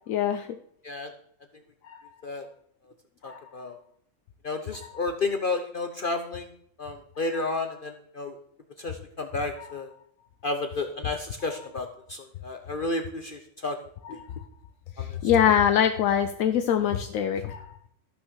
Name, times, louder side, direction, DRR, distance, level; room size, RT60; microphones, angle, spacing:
voice 1, 0.1-0.6 1.8-2.0 3.2-3.4 4.7-4.9 7.3-7.4 9.6-9.7 14.0-14.3 15.0-17.7, left 9 dB, 85° left, 8 dB, 1.1 m, -24 dB
voice 2, 3.2-3.8 4.4-6.5 6.8-8.3 8.8-9.9 10.4-13.8 14.1-14.2 15.0-15.1, left 3 dB, 45° left, 6 dB, 0.9 m, -31 dB
13.0 x 6.1 x 6.3 m, 0.68 s
omnidirectional pair, 1.4 m